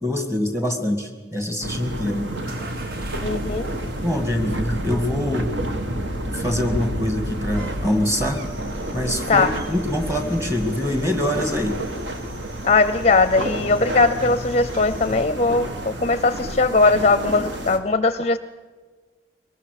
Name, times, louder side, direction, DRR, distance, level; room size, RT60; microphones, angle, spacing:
voice 1, 0.0-2.3 4.0-5.5 6.3-8.4 8.9-11.8, left 1 dB, 15° right, 6 dB, 2.0 m, -24 dB
sound 1, 1.6-17.8, right 1 dB, 75° right, 1.8 m, -30 dB
sound 2, 2.5-15.3, equal, 55° right, 1.3 m, -39 dB
voice 2, 3.2-3.7 9.3-9.5 12.6-18.4, left 3 dB, 35° left, 13 dB, 0.5 m, -19 dB
sound 3, 8.3-15.1, left 1 dB, 40° right, 7.6 m, -42 dB
22.5 x 19.5 x 6.6 m, 1.4 s
head